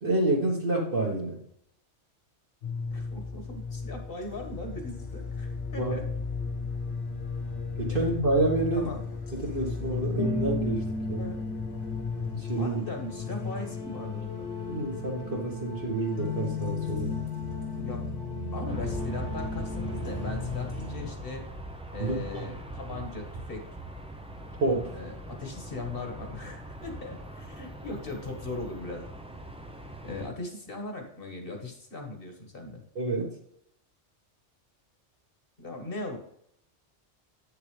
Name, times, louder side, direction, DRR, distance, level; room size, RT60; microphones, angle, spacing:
voice 1, 0.0-1.4 5.8-5.9 7.8-8.9 9.3-11.3 12.3-12.8 14.7-17.1 22.0-22.4 24.6-25.0 32.9-33.3, right 2 dB, 50° right, -3 dB, 1.5 m, -28 dB
sound 1, 2.6-21.1, left 4 dB, 75° left, 1.7 m, -34 dB
voice 2, 2.9-6.1 8.7-9.0 11.2-11.4 12.6-14.5 17.8-18.0 18.5-21.4 21.9-23.6 24.9-29.0 30.0-32.8 35.6-36.2, left 2 dB, 50° left, 3 dB, 1.7 m, -39 dB
Aircraft, 18.7-30.3, right 1 dB, 5° right, 0.5 m, -41 dB
8.6 x 6.7 x 3.3 m, 0.71 s
omnidirectional pair, 1.2 m